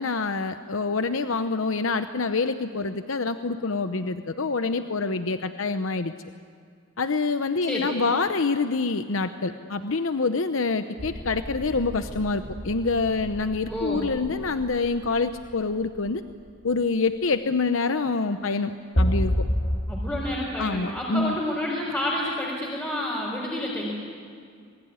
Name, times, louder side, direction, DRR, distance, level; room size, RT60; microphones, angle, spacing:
voice 1, 0.0-6.1 7.0-16.2 16.6-18.7 19.0-19.3 20.6-21.4, left 4 dB, 85° left, 9 dB, 0.8 m, -26 dB
voice 2, 7.6-8.0 13.7-14.1 19.9-24.0, left 1 dB, 10° left, -5 dB, 4.5 m, -29 dB
sound 1, 11.0-16.5 19.0-19.8, equal, 50° left, 5.4 m, -30 dB
27.0 x 21.5 x 9.6 m, 2.2 s
head